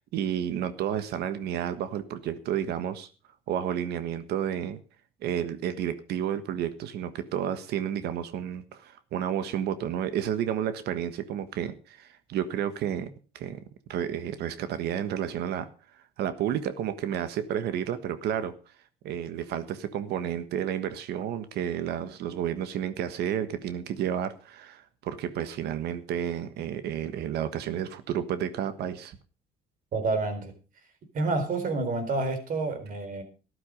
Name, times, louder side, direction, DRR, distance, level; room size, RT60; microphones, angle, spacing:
voice 1, 0.1-3.1 3.5-4.8 5.2-13.1 13.3-13.6 13.9-15.7 16.2-18.5 19.0-29.2, right 9 dB, 75° right, 1.4 m, -31 dB
voice 2, 29.9-30.5 31.1-33.2, right 3 dB, 55° right, 4.3 m, -28 dB
13.5 x 12.0 x 5.3 m
cardioid pair, 110°, 17 cm